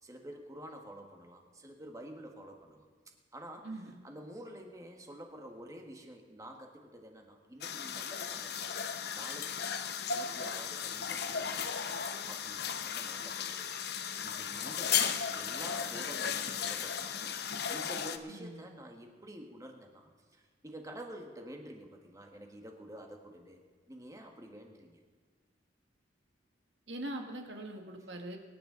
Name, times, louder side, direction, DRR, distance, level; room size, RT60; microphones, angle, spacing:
voice 1, 0.0-2.9 3.3-3.8 4.0-8.7 9.1-9.7 10.1-23.6 23.9-25.0, right 1 dB, 20° right, 2 dB, 1.7 m, -49 dB
voice 2, 3.6-4.0 14.9-15.1 18.3-18.6 26.9-28.4, right 1 dB, 80° right, 3 dB, 1.8 m, -42 dB
sound 1, 7.6-18.2, left 7 dB, 60° left, 0.7 m, -35 dB
24.0 x 10.5 x 4.0 m, 1.5 s
head